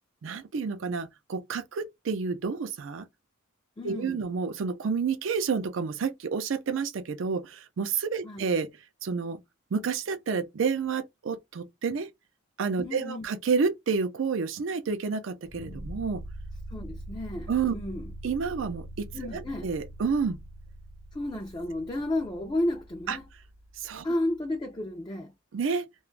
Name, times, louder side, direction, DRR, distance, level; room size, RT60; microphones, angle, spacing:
voice 1, 0.2-3.1 3.8-8.7 9.0-9.4 9.7-12.1 12.6-16.2 17.5-17.7 18.2-19.1 19.3-20.4 23.1-23.2 23.8-24.0 25.5-25.9, right 5 dB, 75° right, 0.4 m, -29 dB
voice 2, 3.8-4.2 8.2-8.4 12.8-13.3 16.7-18.1 19.1-19.7 21.1-23.2 24.0-25.3, left 1 dB, 20° left, 0.4 m, -32 dB
sound 1, 15.5-24.5, right 1 dB, 60° left, 0.7 m, -43 dB
2.4 x 2.2 x 3.1 m
head